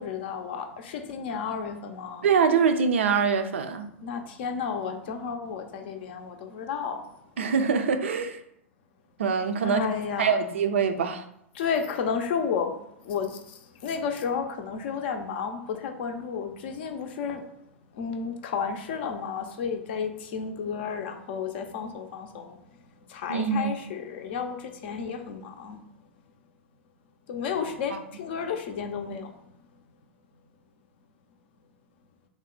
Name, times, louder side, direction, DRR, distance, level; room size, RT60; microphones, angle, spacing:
voice 1, 0.0-2.3 4.0-7.0 9.6-10.4 11.5-12.8 13.0-17.4 17.9-22.6 23.1-25.8 27.3-29.3, left 6 dB, 50° left, 5 dB, 0.5 m, -32 dB
voice 2, 2.2-3.9 7.4-8.4 9.2-9.8 10.2-11.2 23.3-23.7 27.9-28.0, right 6 dB, 65° right, 8 dB, 0.4 m, -24 dB
3.5 x 2.1 x 3.8 m, 0.77 s
figure-of-eight pair, 95°, 7 cm